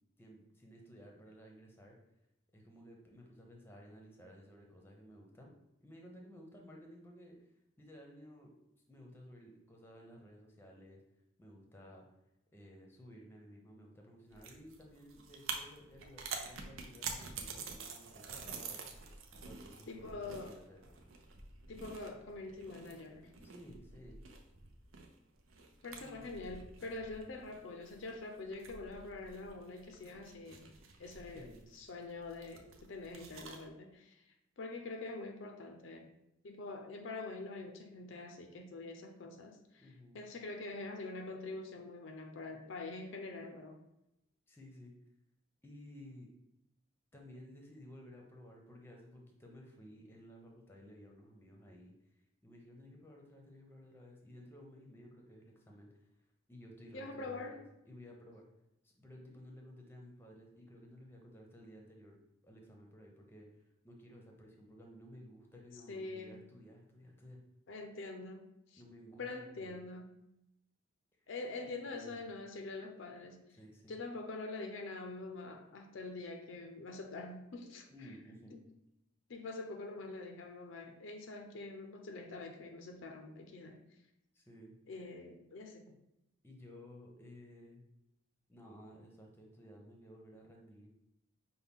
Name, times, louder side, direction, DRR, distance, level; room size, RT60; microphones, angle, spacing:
voice 1, 0.2-2.0 2.5-5.5 5.8-7.4 7.8-8.5 8.9-11.0 11.4-12.0 12.5-19.0 19.3-21.0 23.4-24.2 26.0-26.3 31.3-31.7 39.8-40.2 44.5-44.9 45.6-46.3 47.1-51.9 52.4-56.0 56.5-58.4 58.8-62.2 62.4-63.5 63.8-67.4 68.8-69.8 71.7-72.2 73.5-74.0 77.9-78.6 84.3-84.7 86.4-87.8 88.5-90.9, equal, 10° left, 0 dB, 0.7 m, -55 dB
sound 1, 14.3-33.7, right 5 dB, 80° right, 0.6 m, -48 dB
voice 2, 19.9-20.6 21.7-23.3 25.8-30.7 31.0-34.2 34.6-36.1 36.4-39.9 40.1-43.8 56.9-57.6 65.9-66.4 67.7-68.4 68.7-68.8 69.2-70.1 71.3-73.4 73.9-77.9 78.5-78.6 79.3-83.8 84.9-86.0, left 3 dB, 65° left, 5 dB, 0.5 m, -45 dB
5.6 x 2.2 x 3.5 m, 0.85 s
head